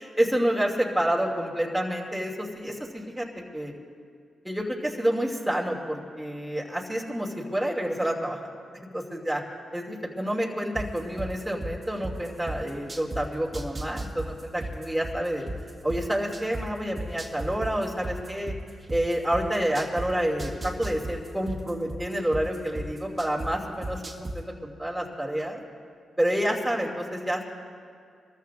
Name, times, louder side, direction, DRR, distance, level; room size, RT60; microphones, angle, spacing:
voice 1, 0.0-3.3 3.5-3.7 4.4-8.5 8.9-9.4 9.7-15.4 15.8-18.5 18.9-25.6 26.2-27.5, right 1 dB, 5° right, -2 dB, 2.6 m, -28 dB
sound 1, 10.7-13.2 13.5-16.6 17.0-20.1 20.4-23.5 23.8-24.3, right 2 dB, 30° right, 2.0 m, -34 dB
27.0 x 14.0 x 2.6 m, 2.3 s
supercardioid pair, 50°, 0 cm